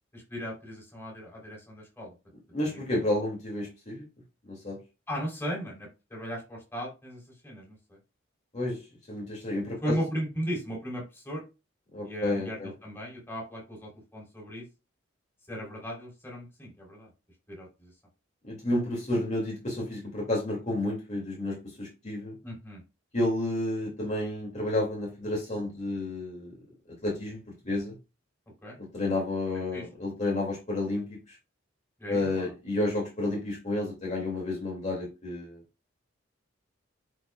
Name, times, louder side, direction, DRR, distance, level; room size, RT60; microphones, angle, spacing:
voice 1, 0.1-2.1 2.6-2.8 5.1-8.0 9.8-11.4 12.0-14.6 15.5-17.1 17.5-17.9 22.4-22.8 28.6-28.8 29.7-29.8 32.0-32.5, equal, 10° left, -3 dB, 3.6 m, -37 dB
voice 2, 2.5-4.0 4.4-4.8 8.5-8.8 9.1-10.0 11.9-12.7 18.4-22.4 23.1-26.6 27.0-27.4 27.6-28.0 28.9-31.4 32.1-35.6, left 2 dB, 35° left, -3 dB, 2.5 m, -31 dB
10.5 x 4.8 x 2.4 m, 0.28 s
head